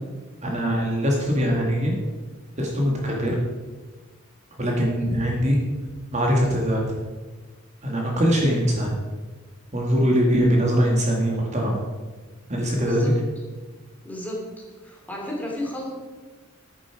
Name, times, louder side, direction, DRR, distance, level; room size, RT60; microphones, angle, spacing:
voice 1, 0.4-2.0 2.6-3.4 4.6-5.6 6.1-6.8 7.8-8.9 9.7-11.8 12.5-13.1, equal, 35° right, -1 dB, 1.9 m, -22 dB
voice 2, 14.0-14.4 14.8-15.9, left 1 dB, 10° left, -2 dB, 2.8 m, -32 dB
10.5 x 9.4 x 4.9 m, 1.3 s
head